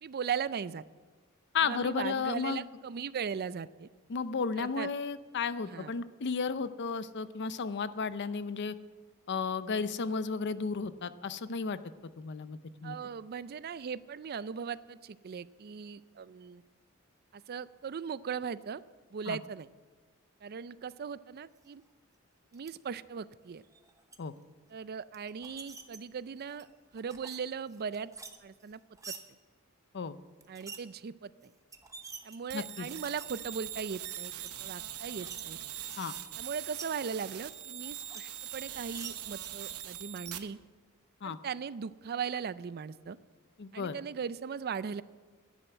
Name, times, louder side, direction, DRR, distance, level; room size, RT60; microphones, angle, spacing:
voice 1, 0.0-0.8 1.6-3.9 4.6-4.9 5.6-5.9 12.8-16.6 17.3-18.8 19.1-19.7 20.4-21.8 22.5-23.6 24.7-26.7 26.9-28.1 28.4-28.8 30.5-31.5 32.2-34.3 34.6-35.6 36.4-40.6 41.2-43.2 43.7-45.0, right 6 dB, 45° right, 17 dB, 0.4 m, -38 dB
voice 2, 1.5-2.6 4.1-8.7 9.3-11.8 12.2-13.0 19.3-19.4 24.2-24.3 29.9-30.2 32.5-32.9 36.0-36.1 41.2-41.4 43.6-43.9, left 5 dB, 50° left, 14 dB, 0.6 m, -33 dB
sound 1, 22.5-22.7 23.6-24.2 25.1-26.0 26.4-27.4 27.7-29.2 30.4-30.8 31.4-31.5 31.7-33.3 33.8-34.0 34.4-34.5 35.0-35.4 35.7-36.9 37.5-38.2 38.5-39.5, right 4 dB, 15° right, 0.9 m, -47 dB
sound 2, 32.5-40.4, right 11 dB, 85° right, 0.9 m, -42 dB
11.0 x 10.5 x 7.7 m, 1.4 s
head